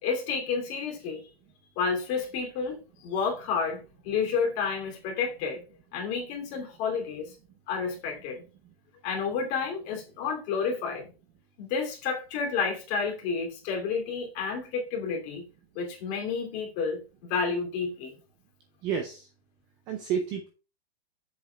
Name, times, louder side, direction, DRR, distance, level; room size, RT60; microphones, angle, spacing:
voice 1, 0.0-1.2 1.8-5.6 5.9-7.3 7.7-8.4 9.0-11.1 11.6-15.4 15.7-18.1, left 5 dB, 30° left, 2.7 m, -30 dB
voice 2, 18.8-19.3 19.9-20.5, right 7 dB, 15° right, 0.4 m, -30 dB
7.4 x 7.1 x 3.3 m
hypercardioid pair, 155°, 31 cm